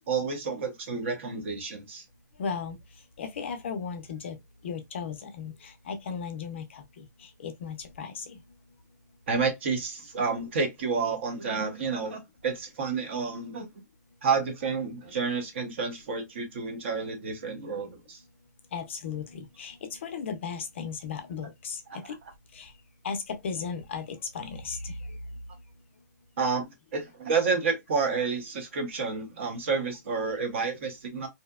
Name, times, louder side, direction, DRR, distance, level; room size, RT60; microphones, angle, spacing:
voice 1, 0.1-2.0 9.3-13.7 14.2-18.2 21.9-22.0 26.4-31.3, right 5 dB, 40° right, 0.7 m, -30 dB
voice 2, 2.4-2.8 3.2-4.4 4.6-8.4 18.7-22.1 22.5-22.7 23.0-25.0, left 6 dB, 40° left, 0.4 m, -36 dB
2.6 x 2.0 x 2.2 m
hypercardioid pair, 175°, 10 cm